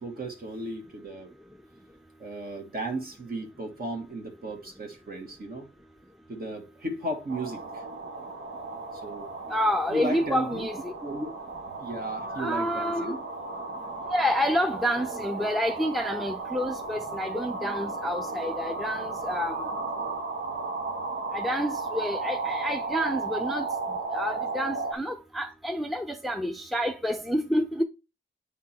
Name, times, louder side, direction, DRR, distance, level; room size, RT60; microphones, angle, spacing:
voice 1, 0.0-1.3 2.2-5.7 6.3-7.8 8.9-9.3 9.9-10.7 11.0-11.3 11.8-13.2, right 1 dB, 50° right, 1.6 m, -35 dB
sound 1, 7.3-24.9, right 3 dB, 85° right, 1.4 m, -34 dB
voice 2, 9.5-10.9 12.3-13.2 14.1-19.7 21.3-23.7 24.1-27.8, equal, ahead, 0.6 m, -29 dB
8.6 x 3.6 x 4.4 m
cardioid pair, 70°, 20 cm